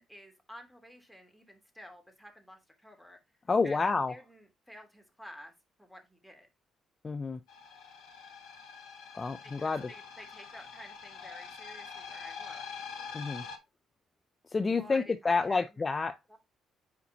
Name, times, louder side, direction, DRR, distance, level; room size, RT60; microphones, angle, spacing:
voice 1, 0.0-3.2 3.6-5.5 5.8-6.5 9.4-12.7 14.8-15.8 16.3-16.4, equal, ahead, 2.9 m, -51 dB
voice 2, 3.5-4.1 7.0-7.4 9.1-9.9 13.1-13.5 14.5-16.4, left 4 dB, 30° left, 0.7 m, -29 dB
sound 1, 7.5-13.6, left 6 dB, 70° left, 1.4 m, -45 dB
9.6 x 4.1 x 2.8 m
figure-of-eight pair, 45°, 0 cm